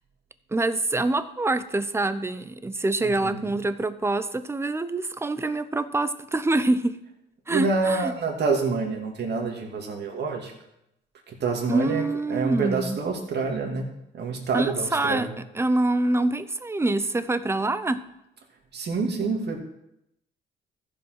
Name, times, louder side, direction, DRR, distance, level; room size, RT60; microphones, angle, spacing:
voice 1, 0.5-7.0 7.5-8.1 11.7-13.0 14.5-18.0, right 2 dB, 15° right, 13 dB, 0.7 m, -25 dB
voice 2, 3.0-3.5 7.5-10.5 11.3-12.0 12.3-13.9 14.1-15.3 18.7-19.6, right 4 dB, 55° right, 1 dB, 2.4 m, -27 dB
14.0 x 5.3 x 5.9 m, 0.84 s
cardioid pair, 90°, 20 cm